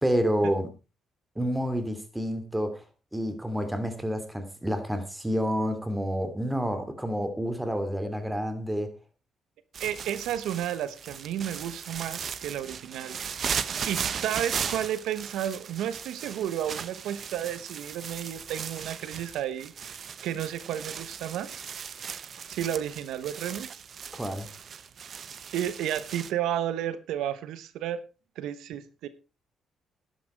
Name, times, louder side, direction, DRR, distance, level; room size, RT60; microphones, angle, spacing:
voice 1, 0.0-0.7 1.4-2.8 3.1-8.9 24.1-24.5, equal, 10° right, 9 dB, 2.9 m, -29 dB
sound 1, 9.7-26.3, right 7 dB, 55° right, 0.9 m, -37 dB
voice 2, 9.8-13.5 13.8-21.6 22.5-23.7 25.5-28.0 28.4-29.1, right 10 dB, 85° right, 14 dB, 1.0 m, -32 dB
12.0 x 10.5 x 4.6 m, 0.32 s
cardioid pair, 90°, 0 cm